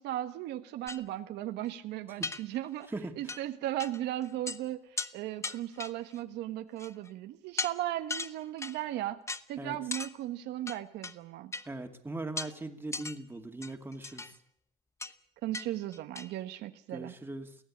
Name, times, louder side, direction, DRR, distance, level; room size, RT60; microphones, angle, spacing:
voice 1, 0.0-2.9 3.2-9.2 9.5-11.5 15.4-17.1, right 13 dB, 85° right, 8 dB, 1.3 m, -36 dB
sound 1, 0.9-1.0 1.6-1.7 2.2-2.9 3.3-3.4 3.8-4.0 4.2-4.6 5.0-5.1 5.4-6.2 6.8-7.1 7.6-7.7 8.1-8.8 9.3-9.4 9.9-10.1 10.7-11.1 11.5-11.7 12.4-12.5 12.9-13.2 13.6-14.3 15.0-15.1 15.5-15.7 15.9-16.3, left 3 dB, 15° left, 0.9 m, -37 dB
voice 2, 2.9-3.4 9.6-9.8 11.7-14.4 16.9-17.6, right 2 dB, 15° right, 5 dB, 2.3 m, -40 dB
23.0 x 16.0 x 8.6 m, 0.66 s
cardioid pair, 110°, 17 cm